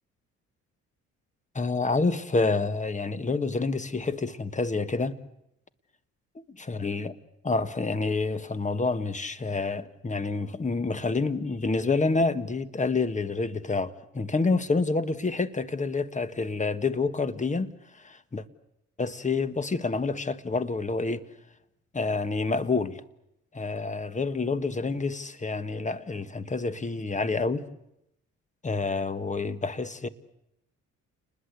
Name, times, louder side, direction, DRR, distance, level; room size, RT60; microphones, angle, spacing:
voice 1, 1.5-5.2 6.7-7.1 7.4-18.4 19.0-21.3 21.9-23.0 23.5-27.7 28.6-30.1, left 3 dB, 25° left, 1.5 m, -28 dB
29.5 x 20.5 x 8.3 m
cardioid pair, 90°, 30 cm